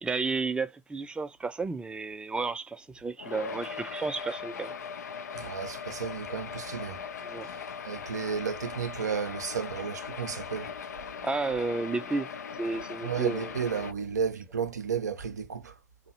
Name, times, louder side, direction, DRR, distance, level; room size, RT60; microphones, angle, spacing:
voice 1, 0.0-4.7 7.2-7.5 11.2-12.3 12.6-13.5, right 3 dB, 10° right, 0.4 m, -32 dB
sound 1, 3.2-13.9, left 6 dB, 80° left, 0.4 m, -39 dB
voice 2, 5.3-7.0 7.9-10.7 13.0-15.7, right 7 dB, 85° right, 0.4 m, -33 dB
2.6 x 2.0 x 2.8 m
figure-of-eight pair, 75°, 9 cm